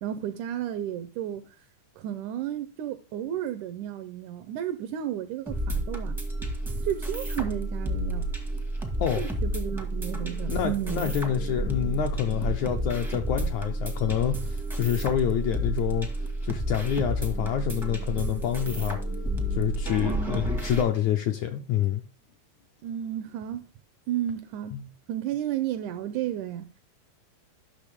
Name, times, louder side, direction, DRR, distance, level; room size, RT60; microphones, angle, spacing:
voice 1, 0.0-1.5 2.0-6.2 6.8-8.3 9.2-11.1 20.0-20.6 22.8-23.7 24.1-26.8, right 11 dB, 80° right, 1.8 m, -33 dB
sound 1, 5.5-20.8, right 1 dB, 5° right, 0.3 m, -30 dB
voice 2, 10.5-16.1 16.4-19.0 19.5-22.0 24.7-24.8, left 10 dB, 75° left, 1.8 m, -27 dB
11.5 x 6.4 x 3.5 m
omnidirectional pair, 4.0 m